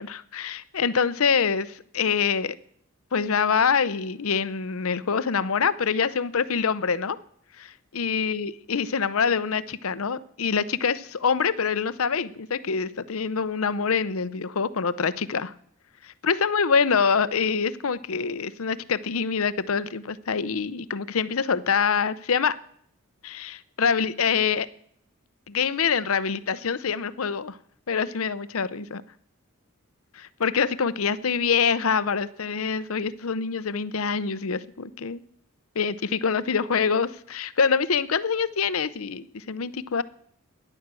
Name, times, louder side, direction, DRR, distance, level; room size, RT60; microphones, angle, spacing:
voice 1, 0.0-2.5 3.1-7.2 7.6-15.5 16.2-22.6 23.2-24.7 25.5-27.6 27.9-29.0 30.1-35.2 35.8-40.0, left 6 dB, 75° left, 16 dB, 0.7 m, -25 dB
14.5 x 11.0 x 7.6 m, 0.67 s
head